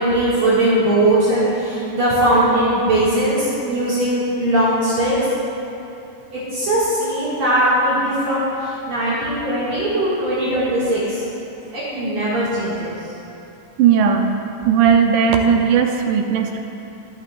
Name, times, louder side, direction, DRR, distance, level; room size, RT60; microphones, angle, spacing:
voice 1, 0.0-5.2 6.3-11.2 11.7-12.9, right 1 dB, 55° right, -10 dB, 3.3 m, -19 dB
voice 2, 13.8-14.3 14.7-16.6, right 7 dB, 80° right, 4 dB, 2.2 m, -16 dB
24.0 x 8.6 x 2.6 m, 2.8 s
omnidirectional pair, 3.8 m